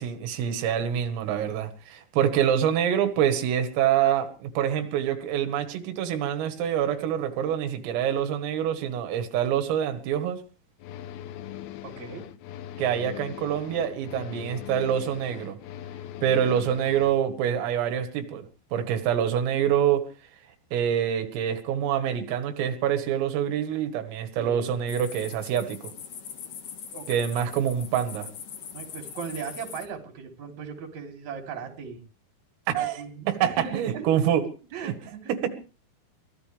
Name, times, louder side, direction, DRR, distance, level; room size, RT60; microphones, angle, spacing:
voice 1, 0.0-10.4 12.8-15.6 16.2-18.4 18.7-20.0 20.7-25.8 27.1-28.3 32.7-33.0 33.4-34.4 34.8-34.9, right 9 dB, 90° right, 7 dB, 4.4 m, -26 dB
sound 1, 10.8-17.2, left 11 dB, 90° left, 2.2 m, -40 dB
voice 2, 11.8-12.3 24.4-24.7 26.9-27.1 28.7-32.0 32.7-34.2 34.7-35.3, right 6 dB, 40° right, 3 dB, 4.1 m, -38 dB
sound 2, 24.9-29.9, left 8 dB, 60° left, 2.5 m, -41 dB
23.5 x 16.5 x 3.5 m, 0.37 s
omnidirectional pair, 5.8 m